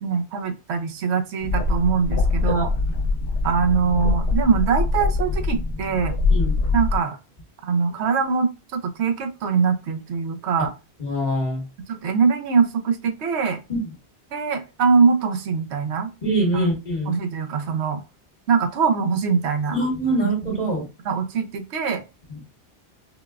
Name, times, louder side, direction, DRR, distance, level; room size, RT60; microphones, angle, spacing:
voice 1, 0.0-2.7 3.4-6.2 6.7-7.2 7.6-10.7 11.9-13.6 14.3-16.1 16.5-16.7 17.1-18.0 18.5-19.8 20.2-20.6 21.0-22.0, right 5 dB, 80° right, 7 dB, 0.9 m, -22 dB
sound 1, 1.4-7.0, left 3 dB, 60° left, 1.0 m, -23 dB
voice 2, 11.0-11.6 13.7-13.8 16.2-17.1 19.7-20.8 22.3-22.4, right 1 dB, 40° left, -2 dB, 1.2 m, -23 dB
3.8 x 2.2 x 2.3 m, 0.28 s
omnidirectional pair, 1.1 m